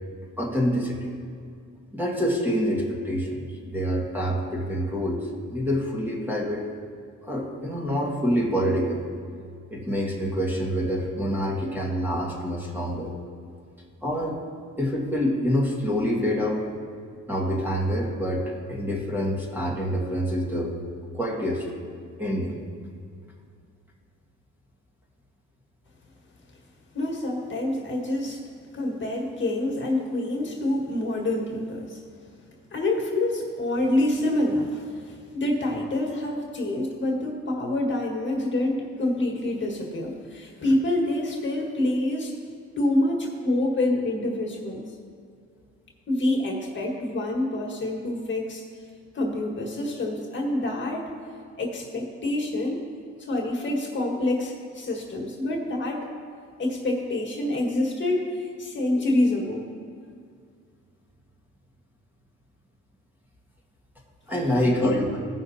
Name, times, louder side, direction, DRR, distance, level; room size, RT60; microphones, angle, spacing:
voice 1, 0.4-1.2 1.9-6.7 7.2-9.0 9.7-13.1 14.0-14.4 14.8-16.7 17.3-20.7 21.1-21.6 22.2-22.5 64.3-65.2, equal, 5° right, -3 dB, 1.7 m, -26 dB
voice 2, 26.9-28.4 28.7-32.0 32.7-42.3 42.8-44.8 46.1-48.6 49.1-51.1 51.6-52.8 53.2-56.1 56.6-59.7 64.8-65.1, left 1 dB, 40° left, -1 dB, 1.7 m, -27 dB
17.0 x 5.8 x 2.8 m, 2.2 s
cardioid pair, 90°, 30 cm